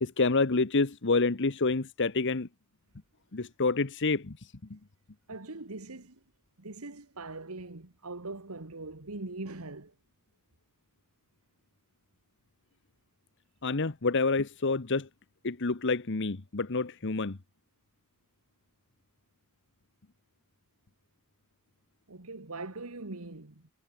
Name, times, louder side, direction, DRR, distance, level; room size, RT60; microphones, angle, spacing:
voice 1, 0.0-2.5 3.3-4.8 13.6-15.1 15.4-17.4, left 3 dB, 55° left, 1.1 m, -28 dB
voice 2, 5.3-6.2 6.6-9.9 22.1-23.7, right 2 dB, 85° right, 1.9 m, -41 dB
head